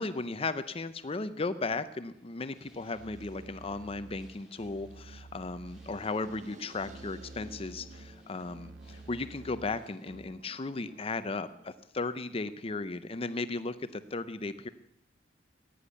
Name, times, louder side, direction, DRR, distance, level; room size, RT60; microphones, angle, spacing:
voice 1, 0.0-14.7, left 3 dB, 30° left, 12 dB, 0.6 m, -36 dB
sound 1, 2.1-10.3, equal, 5° right, 3.9 m, -63 dB
Musical instrument, 2.9-10.5, right 3 dB, 90° right, 0.6 m, -51 dB
sound 2, 5.7-11.6, right 1 dB, 40° right, 1.5 m, -55 dB
15.0 x 10.0 x 8.2 m, 0.83 s
head